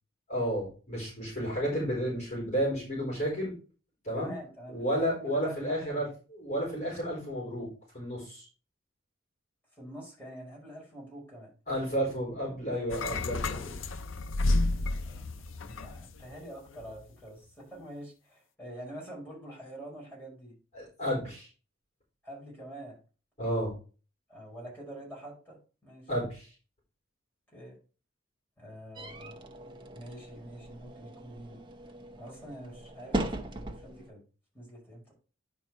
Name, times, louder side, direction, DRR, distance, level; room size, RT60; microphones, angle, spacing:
voice 1, 0.3-3.5 4.0-4.3 4.7-6.1 6.3-7.7 7.9-8.5 11.7-13.8 20.7-21.5 23.4-23.7 26.1-26.5, equal, 35° left, -5 dB, 4.4 m, -32 dB
voice 2, 4.2-6.0 9.7-11.5 14.8-15.3 15.6-20.6 22.2-23.0 24.3-26.1 27.5-27.8 28.6-29.5 29.9-31.6 32.2-34.2 34.5-35.1, right 1 dB, 10° left, -5 dB, 5.2 m, -46 dB
sound 1, 12.9-16.3 16.7-17.0, left 2 dB, 80° left, 0.7 m, -31 dB
sound 2, 29.0-34.1, right 1 dB, 25° right, 0.9 m, -39 dB
10.0 x 4.5 x 4.5 m, 0.36 s
head